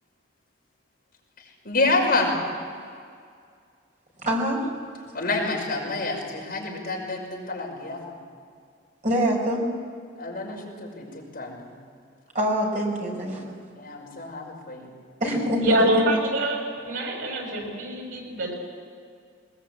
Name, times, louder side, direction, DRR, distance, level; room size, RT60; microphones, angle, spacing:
voice 1, 1.6-2.3 5.1-8.1 10.2-11.1 11.3-11.7 13.7-14.9, left 3 dB, 50° left, -2 dB, 5.6 m, -28 dB
voice 2, 4.2-4.6 9.0-9.6 12.3-13.5 15.2-15.6 15.9-16.0, equal, 40° right, 0 dB, 4.6 m, -25 dB
voice 3, 15.6-18.5, right 1 dB, 90° right, 1 dB, 6.4 m, -25 dB
21.0 x 20.5 x 8.5 m, 2.2 s
head